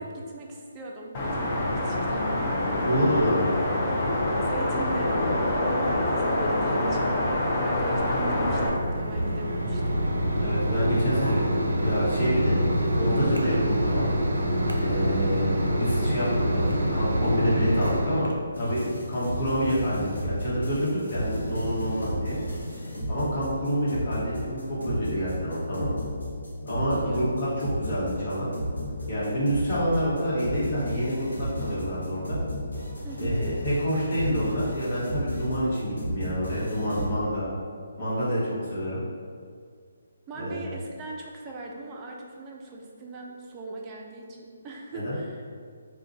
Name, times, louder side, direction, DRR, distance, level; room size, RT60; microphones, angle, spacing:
voice 1, 0.0-2.5 4.4-5.1 5.8-7.2 7.6-10.0 27.0-27.3 33.0-33.4 40.3-45.4, right 2 dB, 20° right, -2 dB, 0.4 m, -40 dB
sound 1, 1.1-8.7, left 1 dB, 30° left, 0.5 m, -26 dB
voice 2, 2.8-3.5 10.4-12.6 13.0-14.1 14.8-16.6 16.9-18.3 18.6-22.4 23.1-25.9 26.7-28.5 29.1-32.4 33.2-37.5 38.0-39.0 40.4-40.7 44.9-45.2, equal, 45° left, -8 dB, 1.1 m, -27 dB
Mechanisms, 7.4-18.3, equal, 75° right, 0.5 m, -26 dB
sound 2, 18.5-37.1, equal, 80° left, 0.8 m, -33 dB
2.4 x 2.2 x 3.9 m, 2.1 s
figure-of-eight pair, 145°, 0 cm